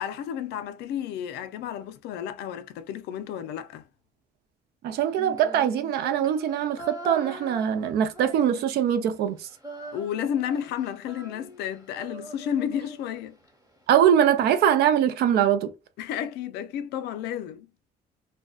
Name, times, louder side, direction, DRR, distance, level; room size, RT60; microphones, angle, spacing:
voice 1, 0.0-3.9 9.9-13.4 16.0-17.7, left 9 dB, 80° left, 0.4 m, -32 dB
voice 2, 4.8-9.5 13.9-15.7, right 9 dB, 70° right, 0.5 m, -22 dB
Female singing, 5.0-8.9 9.2-13.5, right 1 dB, 20° right, 0.9 m, -43 dB
2.5 x 2.2 x 2.3 m
cardioid pair, 110°, 17 cm